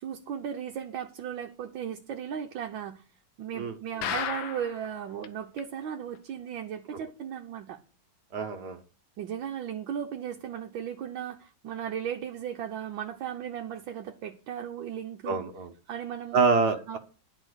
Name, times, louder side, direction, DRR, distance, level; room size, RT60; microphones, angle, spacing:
voice 1, 0.0-3.0 3.4-7.8 9.2-15.4 15.9-16.4 16.9-17.0, right 9 dB, 75° right, 1.5 m, -36 dB
sound 1, 4.0-4.9 5.2-5.3 5.6-5.7 6.2-6.3, left 9 dB, 75° left, 1.6 m, -32 dB
voice 2, 8.3-8.8 15.2-15.7 16.3-17.0, right 4 dB, 55° right, 1.5 m, -26 dB
11.0 x 4.9 x 7.9 m
omnidirectional pair, 2.2 m